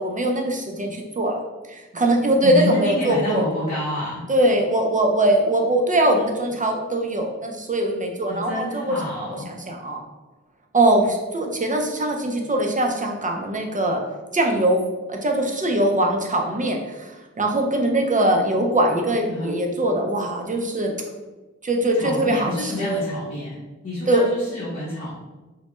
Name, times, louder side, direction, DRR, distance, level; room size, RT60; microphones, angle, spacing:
voice 1, 0.0-1.4 1.7-3.5 4.3-10.0 10.7-14.0 14.3-20.9 21.6-23.0 24.1-24.3, right 1 dB, 30° right, 2 dB, 0.4 m, -22 dB
voice 2, 2.4-4.2 8.3-9.5 19.3-19.5 21.9-23.5 23.8-25.1, left 1 dB, 50° left, -10 dB, 0.7 m, -28 dB
2.1 x 2.1 x 2.9 m, 1.2 s
wide cardioid pair, 60°, 29 cm